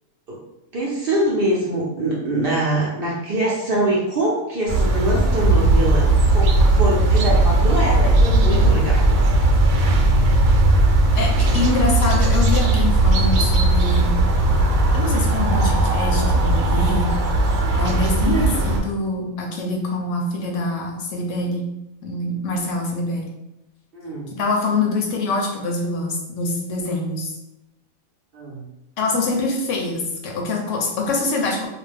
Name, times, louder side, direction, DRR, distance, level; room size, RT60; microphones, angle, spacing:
voice 1, 0.7-9.1 23.9-24.3 28.3-28.6, right 1 dB, 55° right, -5 dB, 0.7 m, -23 dB
sound 1, 4.7-18.8, right 2 dB, 80° right, 1.0 m, -17 dB
voice 2, 11.2-14.1 14.9-17.1 17.8-21.7 22.0-23.3 24.3-27.3 29.0-31.7, left 2 dB, 70° left, 0 dB, 0.9 m, -25 dB
2.4 x 2.1 x 3.3 m, 0.92 s
omnidirectional pair, 1.4 m